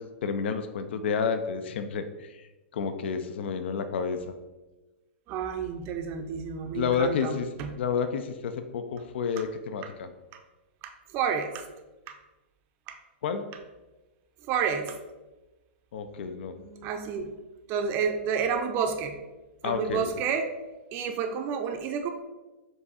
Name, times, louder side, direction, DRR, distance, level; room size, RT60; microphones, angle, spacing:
voice 1, 0.0-2.0 2.7-4.3 6.7-7.5 7.8-10.1 13.2-13.4 15.9-16.5 19.6-20.1, left 6 dB, 65° left, 9 dB, 0.4 m, -30 dB
voice 2, 5.3-7.7 10.8-11.6 12.1-12.2 12.9-13.0 14.5-15.0 16.1-17.3 17.7-19.2 19.6-20.5 20.9-22.1, right 6 dB, 35° right, 5 dB, 0.5 m, -30 dB
4.6 x 2.6 x 4.0 m, 1.1 s
hypercardioid pair, 120°, 6 cm